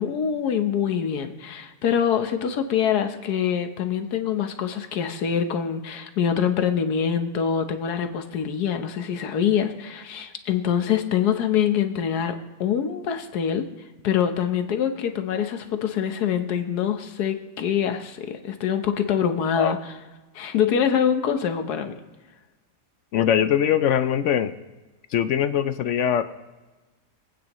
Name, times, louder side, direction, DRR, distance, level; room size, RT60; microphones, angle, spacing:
voice 1, 0.0-13.7 14.0-19.9 20.3-22.0, left 8 dB, 90° left, 7 dB, 1.5 m, -25 dB
voice 2, 23.1-24.5 25.1-26.2, left 9 dB, 70° left, 11 dB, 0.7 m, -22 dB
24.5 x 9.1 x 3.0 m, 1.2 s
omnidirectional pair, 1.6 m